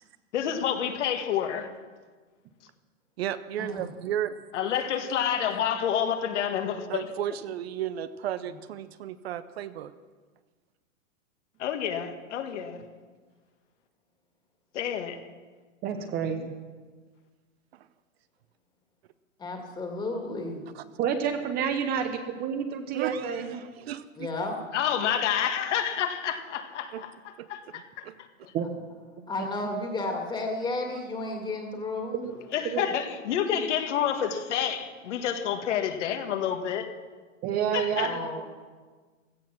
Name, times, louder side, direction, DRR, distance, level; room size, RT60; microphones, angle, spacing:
voice 1, 0.3-1.7 4.5-7.1 11.6-12.8 14.7-15.2 24.7-27.1 27.5-28.1 28.4-28.5 32.5-36.9 37.7-38.2, left 9 dB, 60° left, 6 dB, 1.8 m, -29 dB
voice 2, 3.2-4.4 6.9-9.9 16.0-16.5 17.7-17.9 20.7-20.8 22.9-24.3 26.9-27.0 27.4-28.2, right 10 dB, 50° right, 13 dB, 0.7 m, -34 dB
voice 3, 15.8-16.4 21.0-23.6 28.5-28.7 29.2-29.3 32.2-32.3 32.6-32.9 37.4-38.1, right 7 dB, 25° right, 6 dB, 1.0 m, -29 dB
voice 4, 19.4-20.6 24.2-24.6 29.3-32.2 37.9-38.5, left 2 dB, 10° left, 2 dB, 2.1 m, -32 dB
16.5 x 13.5 x 6.0 m, 1.4 s
hypercardioid pair, 150°, 39 cm